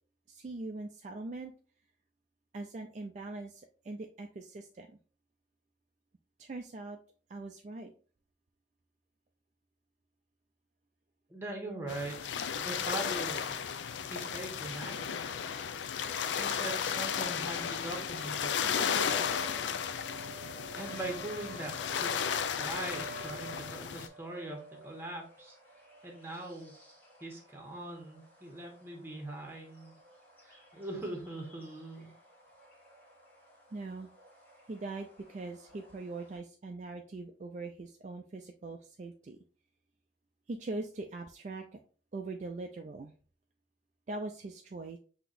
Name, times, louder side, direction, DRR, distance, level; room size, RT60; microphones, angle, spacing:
voice 1, 0.3-1.5 2.5-5.0 6.4-7.0 7.3-7.9 33.7-34.1 34.7-39.4 40.5-41.8 42.1-43.1 44.1-45.0, right 2 dB, 40° right, 3 dB, 0.4 m, -41 dB
voice 2, 11.3-13.5 14.1-15.2 16.4-18.9 20.8-22.1 22.6-25.6 26.0-26.7 27.2-30.0 30.4-32.1, right 2 dB, 15° right, 0 dB, 1.2 m, -41 dB
sound 1, 11.9-24.1, left 7 dB, 80° left, 0.4 m, -34 dB
sound 2, 18.1-36.4, right 1 dB, 10° left, 1.5 m, -52 dB
5.8 x 2.9 x 2.5 m, 0.39 s
head